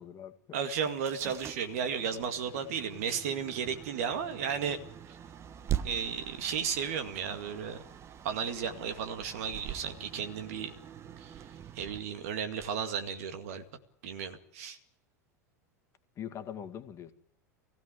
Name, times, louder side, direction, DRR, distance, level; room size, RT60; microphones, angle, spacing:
voice 1, 0.0-0.6 16.2-17.1, left 9 dB, 30° left, 9 dB, 1.9 m, -42 dB
voice 2, 0.5-4.8 5.8-7.8 8.2-10.7 11.2-11.4 11.8-13.6 14.0-14.8, right 7 dB, 55° right, 8 dB, 2.2 m, -34 dB
sound 1, 0.8-13.7, right 10 dB, 30° right, 1.1 m, -43 dB
21.0 x 16.0 x 9.3 m, 0.75 s
figure-of-eight pair, 80°, 9 cm